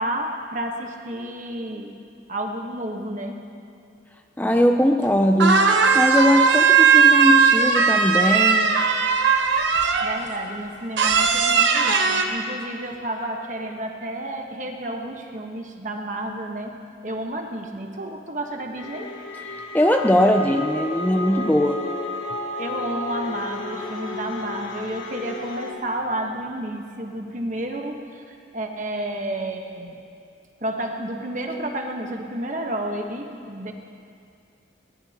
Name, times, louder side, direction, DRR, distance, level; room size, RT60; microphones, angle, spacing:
voice 1, 0.0-3.4 10.0-19.1 22.6-30.0 30.6-33.7, right 1 dB, 40° right, 2 dB, 1.3 m, -31 dB
voice 2, 4.4-8.8 19.7-21.8, equal, 10° left, 4 dB, 0.5 m, -20 dB
sound 1, 5.0-5.1 5.4-10.2 11.0-12.2, right 5 dB, 70° right, 1.0 m, -18 dB
sound 2, 18.8-25.7, left 2 dB, 90° left, 1.9 m, -32 dB
22.0 x 19.0 x 2.9 m, 2.5 s
head